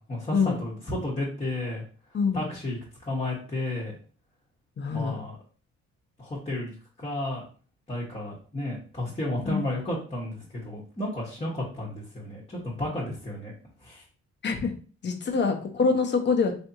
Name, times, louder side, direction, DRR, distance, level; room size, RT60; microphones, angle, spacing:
voice 1, 0.0-1.8 2.3-3.9 4.9-5.4 6.2-7.5 7.9-13.5 13.8-14.0, left 1 dB, 20° left, -6 dB, 1.1 m, -32 dB
voice 2, 2.1-2.5 4.8-5.2 9.4-9.6 14.4-14.7 15.0-16.5, left 5 dB, 35° left, 4 dB, 0.7 m, -25 dB
3.3 x 2.7 x 2.7 m, 0.40 s
cardioid pair, 90°, 30 cm